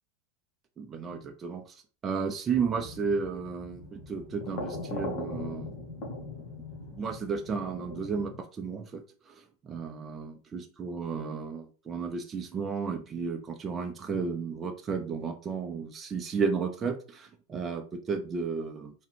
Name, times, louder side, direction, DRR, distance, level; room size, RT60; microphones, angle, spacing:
voice 1, 0.8-5.7 7.0-18.9, right 5 dB, 25° right, 4 dB, 0.6 m, -33 dB
sound 1, 2.5-8.4, left 2 dB, 55° left, 1.4 m, -40 dB
3.6 x 2.3 x 4.4 m, 0.38 s
hypercardioid pair, 95°, 0 cm